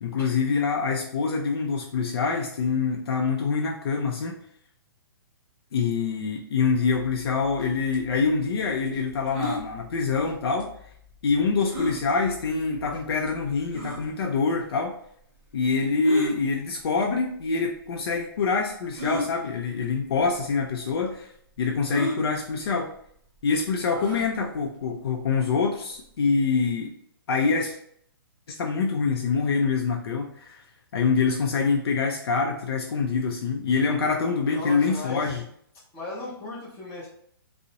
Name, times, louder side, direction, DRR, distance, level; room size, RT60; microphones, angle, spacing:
voice 1, 0.0-4.4 5.7-10.7 11.2-15.0 15.5-21.3 21.6-22.9 23.4-26.9 27.3-27.8 28.5-30.6 30.9-35.4, left 5 dB, 80° left, 1 dB, 0.4 m, -25 dB
sound 1, 6.8-14.1, left 3 dB, 55° right, 0.6 m, -49 dB
sound 2, 9.3-9.6 11.7-12.0 12.8-12.9 13.7-14.0 16.0-16.3 17.4-17.5 18.9-19.3 20.2-20.3 20.6-20.7 21.9-22.2 23.9-24.3, left 1 dB, 10° right, 0.9 m, -30 dB
voice 2, 34.5-35.5 35.9-37.1, left 2 dB, 10° left, -10 dB, 0.6 m, -37 dB
2.4 x 2.0 x 2.7 m, 0.67 s
hypercardioid pair, 155°, 13 cm